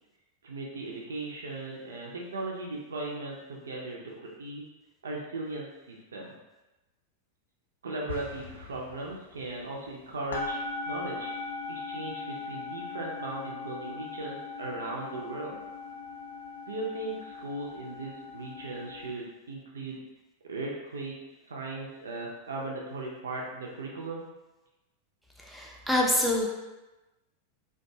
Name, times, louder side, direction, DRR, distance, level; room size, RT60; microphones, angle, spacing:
voice 1, 0.4-4.6 5.0-6.4 7.8-10.6 10.9-11.3 11.7-15.6 16.7-20.0 20.4-21.2 21.4-24.3, right 2 dB, 70° right, -2 dB, 0.4 m, -37 dB
sound 1, 8.1-9.7, left 6 dB, 80° left, 0.7 m, -45 dB
sound 2, 8.4-8.6 8.8-9.9 10.3-19.1, left 3 dB, 65° left, 0.3 m, -39 dB
voice 2, 25.4-26.5, left 1 dB, ahead, -1 dB, 0.4 m, -26 dB
2.5 x 2.3 x 2.6 m, 1.0 s
figure-of-eight pair, 90°, 0 cm